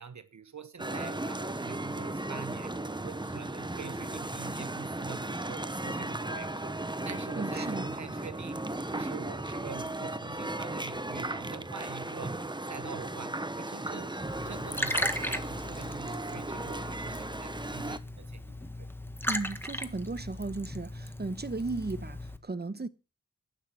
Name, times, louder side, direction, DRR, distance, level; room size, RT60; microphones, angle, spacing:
voice 1, 0.0-2.7 3.0-8.6 8.9-18.9, right 6 dB, 65° right, 1.1 m, -45 dB
sound 1, 0.8-18.0, right 2 dB, 15° right, 1.1 m, -36 dB
voice 2, 7.3-7.9 19.3-22.9, right 3 dB, 30° right, 1.2 m, -35 dB
Liquid, 14.3-22.4, left 1 dB, 5° left, 1.6 m, -37 dB
12.0 x 9.1 x 7.7 m
wide cardioid pair, 85°, 31 cm